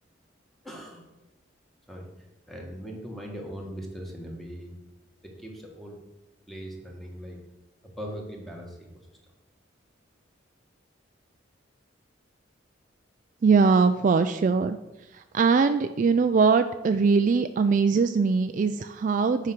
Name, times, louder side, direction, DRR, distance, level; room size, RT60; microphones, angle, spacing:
voice 1, 0.6-1.0 1.9-2.1 2.5-4.7 5.2-6.0 6.5-7.4 7.8-8.8, equal, ahead, -1 dB, 1.5 m, -39 dB
voice 2, 13.4-14.8 15.1-19.5, right 5 dB, 40° right, 9 dB, 0.3 m, -21 dB
8.5 x 5.0 x 5.9 m, 1.0 s
head